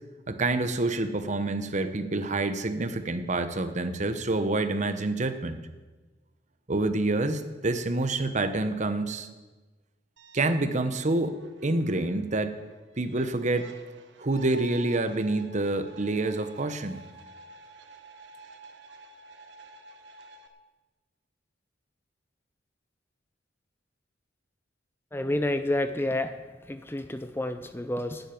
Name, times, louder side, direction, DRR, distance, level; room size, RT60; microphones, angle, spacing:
voice 1, 0.3-5.6 6.7-9.3 10.3-12.5 13.0-13.7 14.2-17.0, right 2 dB, 40° right, 9 dB, 0.9 m, -27 dB
sound 1, 10.2-20.5, right 2 dB, 70° right, 1.2 m, -50 dB
voice 2, 25.1-26.4 26.6-28.3, left 1 dB, 10° left, 10 dB, 0.5 m, -29 dB
11.5 x 8.2 x 9.2 m, 1.2 s
head